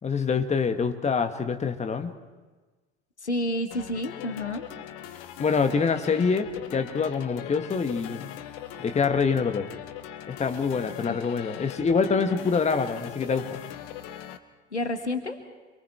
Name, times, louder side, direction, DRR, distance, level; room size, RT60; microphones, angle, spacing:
voice 1, 0.0-2.1 5.4-8.3 8.8-9.7 10.3-13.6, left 5 dB, 20° left, 7 dB, 1.4 m, -25 dB
voice 2, 3.2-4.6 11.1-11.2 14.7-15.4, left 1 dB, 85° left, 8 dB, 1.3 m, -29 dB
sound 1, 3.7-14.4, left 11 dB, 60° left, 1.1 m, -40 dB
27.0 x 22.5 x 4.6 m, 1.3 s
figure-of-eight pair, 65°, 33 cm